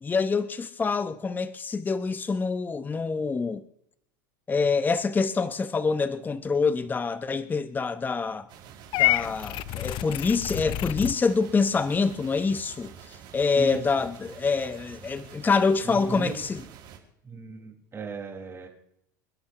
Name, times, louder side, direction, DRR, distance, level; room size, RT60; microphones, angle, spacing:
voice 1, 0.0-3.6 4.5-8.5 9.0-16.6, left 4 dB, 15° left, 0.8 m, -26 dB
sound 1, 8.5-17.0, right 8 dB, 50° right, 5.1 m, -48 dB
Purr / Meow, 8.9-11.2, left 17 dB, 50° left, 0.5 m, -27 dB
voice 2, 15.8-16.4 17.2-18.7, right 5 dB, 25° right, 4.8 m, -37 dB
28.5 x 11.5 x 3.0 m
hypercardioid pair, 95°, 11 cm